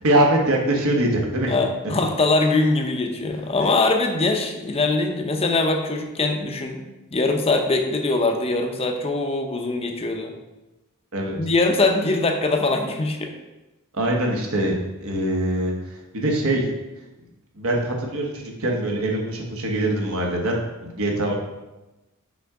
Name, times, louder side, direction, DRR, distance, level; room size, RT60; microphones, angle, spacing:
voice 1, 0.0-1.5 11.1-11.3 13.9-16.7 17.5-20.6 20.9-21.4, right 1 dB, 70° right, 0 dB, 1.2 m, -23 dB
voice 2, 1.5-6.8 7.1-10.3 11.4-13.3, left 3 dB, 25° left, 4 dB, 0.6 m, -22 dB
5.9 x 4.9 x 3.7 m, 1.0 s
head